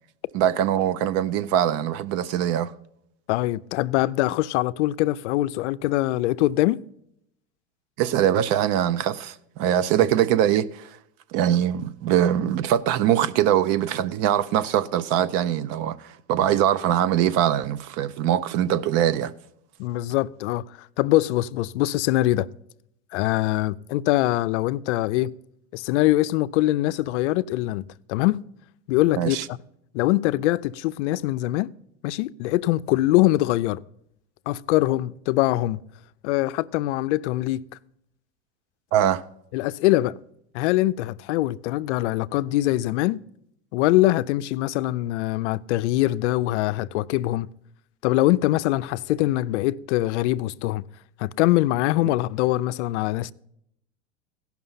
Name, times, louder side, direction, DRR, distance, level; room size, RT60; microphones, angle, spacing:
voice 1, 0.3-2.7 8.0-10.9 11.3-19.3 29.2-29.4 38.9-39.2, right 10 dB, 45° right, 0.5 m, -22 dB
voice 2, 3.3-6.8 19.8-22.5 23.1-25.3 25.7-28.4 28.9-29.4 29.9-31.7 32.0-33.8 34.5-35.8 36.2-37.6 39.5-40.2 40.5-43.2 43.7-47.5 48.0-50.8 51.2-53.3, left 16 dB, 75° left, 0.5 m, -23 dB
15.5 x 5.9 x 5.6 m
supercardioid pair, 135°, 35 cm